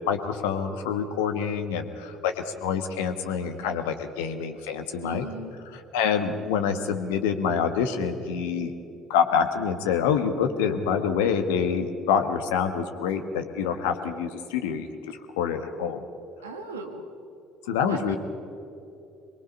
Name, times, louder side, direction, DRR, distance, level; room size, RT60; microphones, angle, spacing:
voice 1, 0.1-5.2 5.9-8.7 9.1-16.0 17.7-18.2, left 7 dB, 70° left, 7 dB, 1.4 m, -26 dB
voice 2, 5.0-5.6 16.4-17.1 17.8-18.2, right 3 dB, 80° right, 5 dB, 1.6 m, -37 dB
24.0 x 22.0 x 5.5 m, 2.7 s
figure-of-eight pair, 55°, 0 cm